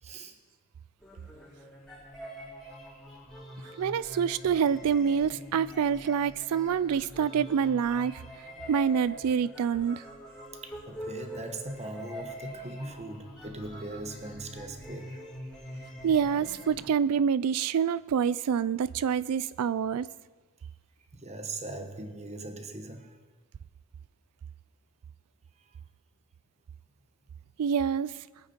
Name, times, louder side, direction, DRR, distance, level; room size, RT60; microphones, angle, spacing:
voice 1, 0.0-0.3 10.6-15.2 21.1-23.2, right 2 dB, 30° right, 6 dB, 1.3 m, -40 dB
sound 1, 1.0-16.9, equal, 5° left, 3.8 m, -44 dB
voice 2, 3.8-8.2 8.7-10.0 16.0-20.1 27.6-28.1, right 7 dB, 80° right, 18 dB, 0.4 m, -26 dB
22.5 x 8.7 x 4.4 m, 1.3 s
head